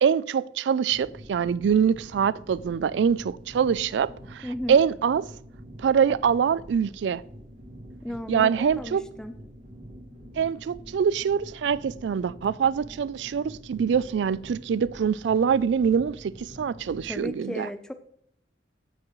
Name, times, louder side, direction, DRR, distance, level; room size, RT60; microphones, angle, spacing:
voice 1, 0.0-5.3 5.8-7.2 8.3-9.0 10.4-17.7, right 7 dB, 70° right, 0.3 m, -24 dB
sound 1, 0.9-17.3, equal, 45° right, 1.8 m, -46 dB
voice 2, 4.4-4.8 8.0-9.3 17.1-17.9, equal, 5° left, 0.4 m, -35 dB
15.0 x 6.1 x 3.1 m
head